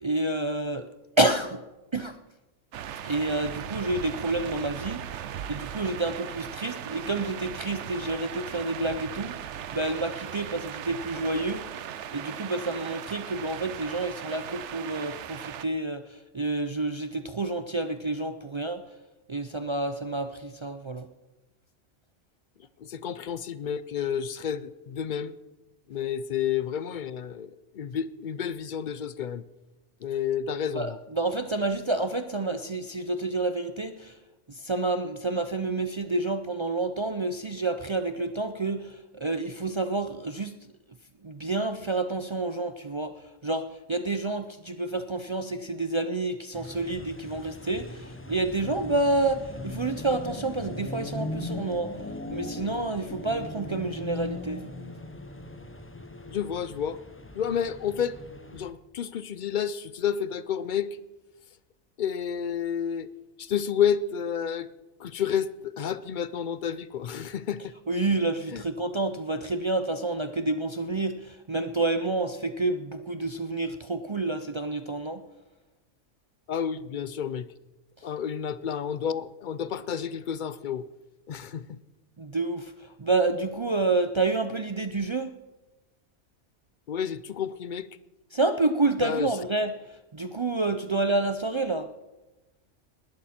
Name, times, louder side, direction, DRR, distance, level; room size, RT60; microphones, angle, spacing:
voice 1, 0.0-0.8 1.2-1.6 1.9-2.2 3.0-5.1 5.5-9.4 9.7-11.7 12.1-18.8 19.3-21.1 30.7-34.2 34.5-40.6 41.2-51.9 52.3-54.6 67.9-75.2 82.2-85.3 88.3-89.8 90.1-91.9, right 2 dB, 45° right, 9 dB, 0.3 m, -29 dB
sound 1, 2.7-15.6, right 9 dB, 70° right, 0.9 m, -38 dB
voice 2, 22.8-25.3 25.9-29.4 30.0-31.0 56.3-57.0 57.3-58.2 58.5-61.0 62.0-63.1 63.4-64.7 65.0-67.7 68.5-68.6 76.5-77.5 78.0-80.9 81.3-81.8 86.9-87.9 89.0-89.3, left 8 dB, 55° left, 16 dB, 0.5 m, -30 dB
sound 2, 46.5-58.7, left 2 dB, 15° left, 0.6 m, -39 dB
20.0 x 11.5 x 4.3 m, 1.1 s
omnidirectional pair, 1.3 m